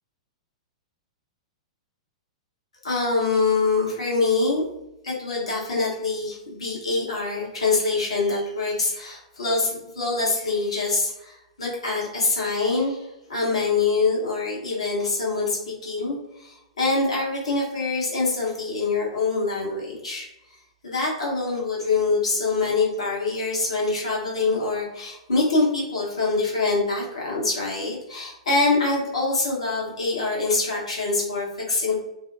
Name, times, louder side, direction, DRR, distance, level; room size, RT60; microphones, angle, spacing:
voice 1, 2.8-4.6 5.0-20.3 20.8-32.0, left 3 dB, 65° left, -4 dB, 1.1 m, -25 dB
2.5 x 2.1 x 2.5 m, 0.88 s
figure-of-eight pair, 100°, 3 cm